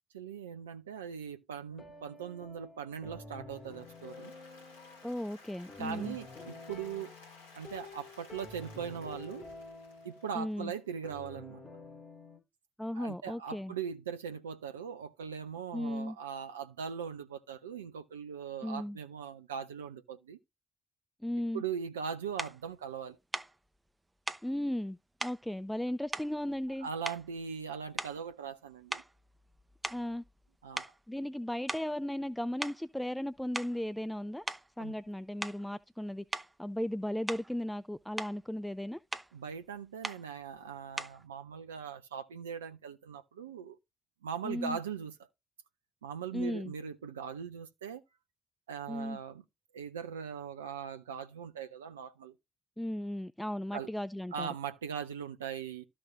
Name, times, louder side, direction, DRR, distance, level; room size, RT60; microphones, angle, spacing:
voice 1, 0.1-4.3 5.8-7.1 7.6-9.5 10.0-11.6 13.0-20.4 21.5-23.2 26.8-29.0 30.6-30.9 34.8-34.9 39.3-43.8 44.2-45.1 46.0-48.0 48.7-49.4 49.7-52.3 53.7-53.9 54.3-55.8, right 7 dB, 85° right, 0.4 m, -40 dB
sound 1, 1.7-12.4, left 3 dB, 35° left, 4.3 m, -50 dB
Applause, 3.6-10.8, left 3 dB, 85° left, 1.6 m, -57 dB
voice 2, 5.0-6.2 10.3-10.7 12.8-13.7 15.7-16.2 18.6-19.0 21.2-21.6 24.4-26.9 29.9-30.2 31.1-34.5 34.8-39.0 44.4-44.8 46.3-46.7 48.9-49.2 52.8-54.5, left 1 dB, 5° left, 0.5 m, -36 dB
sound 2, 22.4-22.6 23.3-23.6 24.3-24.5 25.2-25.4 26.1-26.7 27.0-27.4 27.9-28.3 28.9-30.5 30.8-31.0 31.7-32.0 32.6-32.8 33.4-33.8 34.5-34.7 35.4-35.7 36.3-36.5 37.3-37.6 37.9-38.4 39.1-39.3 40.0-40.3 41.0-41.2, right 2 dB, 15° right, 0.9 m, -39 dB
13.0 x 5.9 x 2.6 m
figure-of-eight pair, 45°, 0 cm